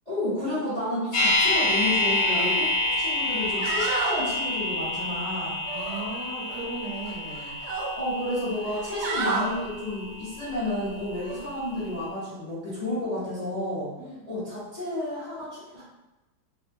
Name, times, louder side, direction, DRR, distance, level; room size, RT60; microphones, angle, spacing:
voice 1, 0.1-2.7 3.0-5.6 7.9-13.9 14.2-15.8, left 1 dB, 30° left, -12 dB, 0.7 m, -31 dB
sound 1, 1.1-11.2 11.5-11.6, left 1 dB, 65° left, 1.2 m, -28 dB
sound 2, 2.3-2.5 2.9-3.0 3.4-4.2 5.7-6.6 7.0-7.9 8.6-9.5 11.2-11.4, right 3 dB, 75° right, 1.2 m, -31 dB
voice 2, 5.7-7.6 14.0-14.2, right 2 dB, 55° right, -9 dB, 1.1 m, -37 dB
3.2 x 2.0 x 2.6 m, 1.0 s
omnidirectional pair, 2.2 m